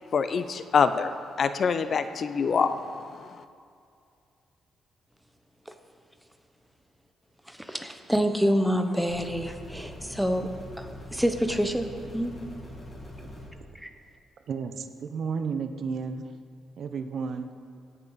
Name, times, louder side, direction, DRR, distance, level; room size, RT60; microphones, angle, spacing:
voice 1, 0.1-1.1 1.4-2.8, left 6 dB, 50° left, 11 dB, 0.4 m, -24 dB
voice 2, 7.5-10.5 10.8-11.9 12.1-12.3 13.7-13.9, equal, ahead, 6 dB, 0.8 m, -27 dB
sound 1, 9.1-13.5, equal, 25° left, 2.1 m, -43 dB
voice 3, 14.5-16.3 16.8-17.5, right 5 dB, 60° right, 8 dB, 0.6 m, -32 dB
17.0 x 5.8 x 4.0 m, 2.4 s
cardioid pair, 110°, 0 cm